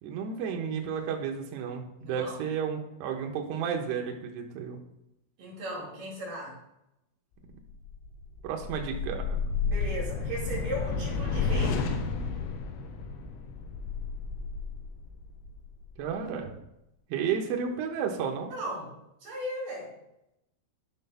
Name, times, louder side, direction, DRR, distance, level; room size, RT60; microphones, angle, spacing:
voice 1, 0.0-4.8 8.4-9.4 16.0-16.5 17.1-18.5, right 7 dB, 75° right, 1 dB, 2.6 m, -32 dB
voice 2, 2.0-2.3 5.4-6.6 9.6-11.8 18.5-18.9 19.2-19.9, right 1 dB, 50° right, -5 dB, 3.1 m, -36 dB
sound 1, 7.7-16.1, left 4 dB, 80° left, 3.3 m, -32 dB
11.0 x 3.9 x 5.5 m, 0.85 s
omnidirectional pair, 6.0 m